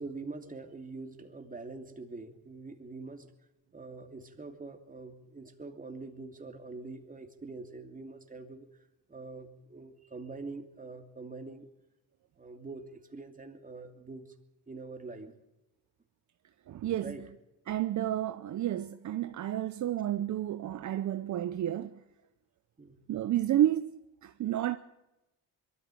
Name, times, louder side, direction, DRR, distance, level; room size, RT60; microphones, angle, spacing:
voice 1, 0.0-3.3 3.7-11.7 12.4-14.3 14.7-15.3 16.7-17.2 22.8-23.0, right 3 dB, 25° right, 2.8 m, -44 dB
voice 2, 16.7-17.2 17.7-22.0 23.1-24.8, right 12 dB, 55° right, 0.8 m, -31 dB
22.5 x 13.5 x 9.2 m
cardioid pair, 85°, 34 cm